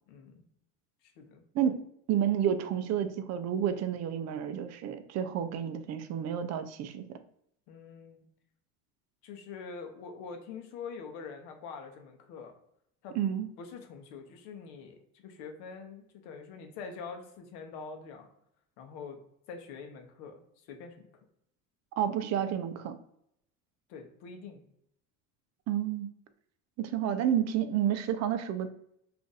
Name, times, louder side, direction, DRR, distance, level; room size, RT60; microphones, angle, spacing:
voice 1, 0.1-0.4 1.2-1.4 7.7-8.3 9.2-12.5 13.0-13.2 13.6-18.3 18.8-19.2 19.5-20.9 23.9-24.6, left 5 dB, 70° left, 5 dB, 0.8 m, -45 dB
voice 2, 2.1-7.1 13.2-13.5 22.0-23.0 25.7-26.1 26.8-28.7, right 9 dB, 40° right, 10 dB, 0.4 m, -30 dB
2.5 x 2.5 x 3.8 m, 0.74 s
supercardioid pair, 105°, 41 cm